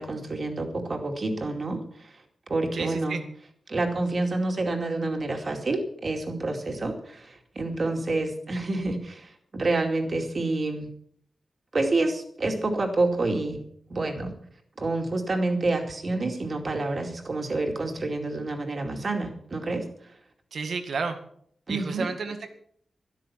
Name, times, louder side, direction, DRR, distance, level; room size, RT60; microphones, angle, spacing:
voice 1, 0.0-2.1 2.5-3.2 3.7-10.9 11.7-13.6 13.9-14.3 14.8-19.8 21.7-22.1, right 2 dB, 40° right, 3 dB, 2.4 m, -28 dB
voice 2, 2.7-3.2 20.5-21.2 21.7-22.5, right 4 dB, 70° right, 7 dB, 2.0 m, -31 dB
13.0 x 12.5 x 5.8 m, 0.63 s
wide cardioid pair, 175°, 0 cm